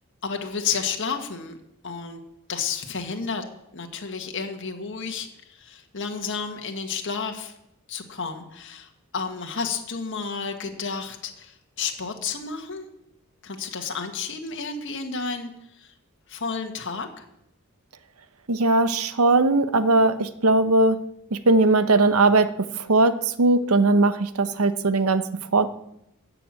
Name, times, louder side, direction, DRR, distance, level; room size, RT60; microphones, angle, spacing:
voice 1, 0.2-1.6 1.8-2.2 2.5-3.4 3.7-7.5 7.9-12.9 13.4-15.9 16.3-17.2, left 5 dB, 60° left, 4 dB, 1.6 m, -31 dB
voice 2, 18.5-21.0 21.3-25.3 25.5-25.7, right 2 dB, 80° right, 12 dB, 0.9 m, -19 dB
13.5 x 6.8 x 8.9 m, 0.81 s
head